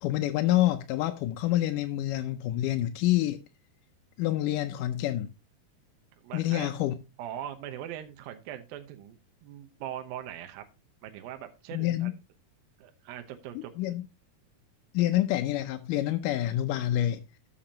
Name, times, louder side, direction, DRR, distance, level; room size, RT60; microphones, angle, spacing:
voice 1, 0.0-3.4 4.2-5.3 6.3-6.9 11.7-12.1 13.6-14.1 14.9-17.2, left 14 dB, 80° left, 1.9 m, -27 dB
voice 2, 6.2-6.7 7.2-10.6 11.0-12.1 12.8-13.7, right 11 dB, 75° right, 2.6 m, -41 dB
13.0 x 7.0 x 2.8 m
omnidirectional pair, 4.4 m